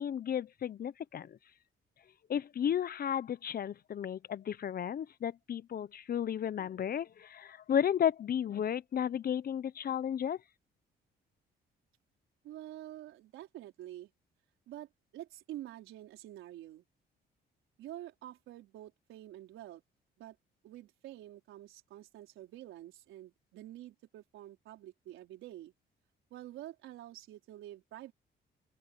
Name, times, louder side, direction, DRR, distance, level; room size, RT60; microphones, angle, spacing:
voice 1, 0.0-1.4 2.3-10.4, left 9 dB, 50° left, 0.7 m, -33 dB
voice 2, 12.4-14.1 14.7-16.8 17.8-19.8 20.2-20.4 20.6-25.7 26.3-28.1, right 13 dB, 90° right, 4.4 m, -48 dB
open air
cardioid pair, 90°, 20 cm